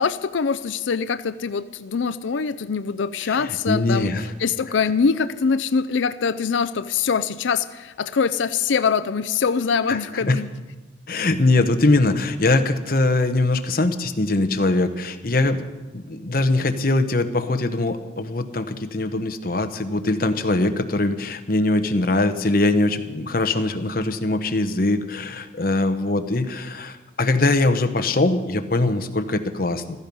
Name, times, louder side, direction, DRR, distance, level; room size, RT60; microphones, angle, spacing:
voice 1, 0.0-4.1 4.4-10.5, left 5 dB, 85° left, 14 dB, 0.5 m, -23 dB
voice 2, 3.2-4.3 9.9-10.4 11.1-15.6 15.9-30.0, left 2 dB, 50° left, 7 dB, 1.0 m, -22 dB
15.5 x 13.5 x 5.5 m, 1.2 s
head